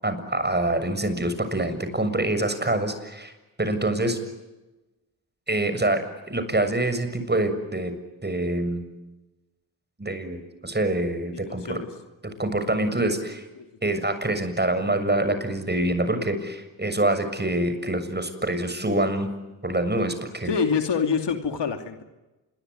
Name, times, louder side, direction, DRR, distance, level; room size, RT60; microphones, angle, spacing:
voice 1, 0.0-3.3 3.6-4.2 5.5-7.9 8.2-8.8 10.0-11.8 12.4-13.4 13.8-19.3 19.6-20.5, right 1 dB, 20° right, 9 dB, 6.9 m, -25 dB
voice 2, 11.3-11.9 13.6-13.7 20.4-22.0, left 6 dB, 65° left, 6 dB, 2.9 m, -26 dB
27.0 x 23.0 x 9.4 m, 1.1 s
supercardioid pair, 45°, 45 cm